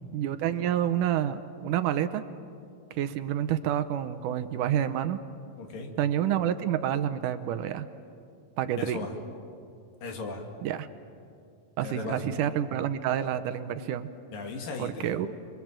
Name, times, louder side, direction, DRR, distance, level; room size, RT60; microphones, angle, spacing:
voice 1, 0.1-2.2 2.9-5.2 6.0-7.9 8.6-9.0 10.6-10.9 11.8-14.1 14.8-15.4, right 10 dB, 75° right, 11 dB, 2.2 m, -28 dB
voice 2, 5.6-5.9 8.8-9.1 10.0-10.4 11.8-12.4 14.3-15.2, left 3 dB, 80° left, 3 dB, 3.9 m, -37 dB
29.5 x 22.0 x 7.5 m, 2.4 s
omnidirectional pair, 3.9 m